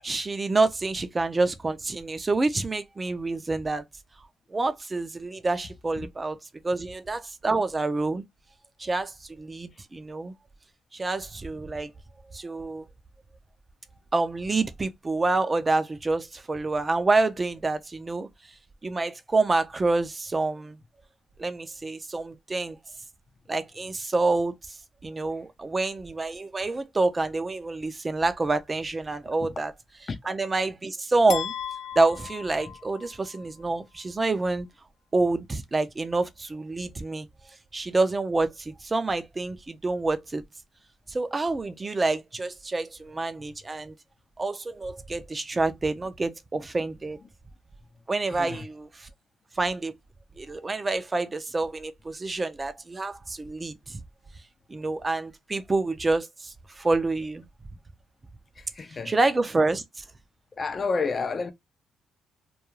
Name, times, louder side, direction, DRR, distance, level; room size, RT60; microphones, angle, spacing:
voice 1, 0.0-3.8 4.5-6.4 6.6-8.2 8.8-10.3 10.9-11.9 12.3-12.9 14.1-18.3 18.8-20.8 21.4-22.8 23.5-29.7 30.2-31.5 32.0-34.7 35.1-37.3 37.7-40.4 41.1-43.9 44.4-47.2 48.1-49.1 49.6-49.9 50.4-54.0 54.7-57.5 59.0-60.0, right 3 dB, 25° right, 0.4 m, -27 dB
sound 1, 31.3-33.4, left 8 dB, 80° left, 0.7 m, -36 dB
voice 2, 48.3-48.6 58.6-59.1 60.6-61.5, left 4 dB, 35° left, 0.5 m, -30 dB
2.3 x 2.2 x 3.0 m
cardioid pair, 90°, 0 cm